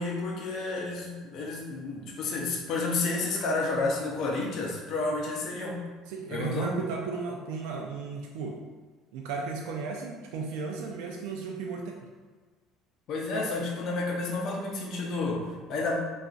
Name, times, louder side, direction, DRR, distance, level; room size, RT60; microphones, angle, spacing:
voice 1, 0.0-5.9 6.3-6.7 13.1-15.9, left 3 dB, 55° left, -2 dB, 0.6 m, -31 dB
voice 2, 6.1-8.6 9.1-12.0, right 4 dB, 85° right, 1 dB, 0.3 m, -35 dB
3.7 x 2.4 x 2.4 m, 1.4 s
cardioid pair, 110°, 0 cm